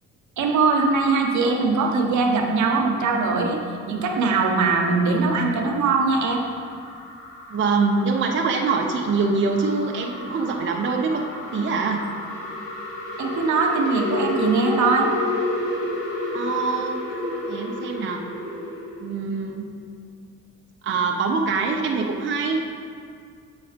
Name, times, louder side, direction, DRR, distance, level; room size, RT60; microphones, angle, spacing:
voice 1, 0.4-3.6 3.9-6.4 13.2-15.1, right 4 dB, 70° right, 2 dB, 1.0 m, -21 dB
sound 1, 3.9-19.1, left 1 dB, 85° left, 1.4 m, -32 dB
voice 2, 7.5-11.2 11.5-12.1 16.3-17.0 17.5-18.2 19.0-19.7 20.8-22.6, right 4 dB, 40° right, 1 dB, 0.7 m, -24 dB
7.8 x 4.2 x 5.0 m, 2.2 s
cardioid pair, 90°, 30 cm